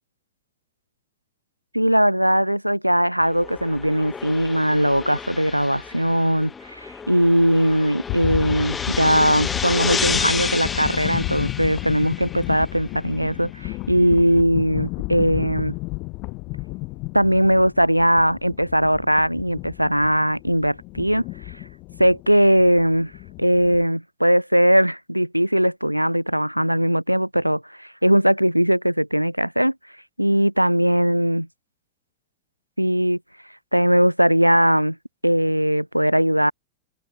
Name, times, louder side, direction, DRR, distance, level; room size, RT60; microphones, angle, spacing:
voice 1, 1.7-15.7 17.1-21.2 22.0-23.1 23.4-29.7 30.2-31.5 32.8-33.2 33.7-35.0 35.2-36.5, equal, 90° right, 0.4 m, -19 dB
sound 1, 3.2-12.8, left 5 dB, 15° left, 1.0 m, -31 dB
sound 2, 8.1-23.8, left 24 dB, 40° left, 0.4 m, -32 dB
open air
figure-of-eight pair, 90°, 0 cm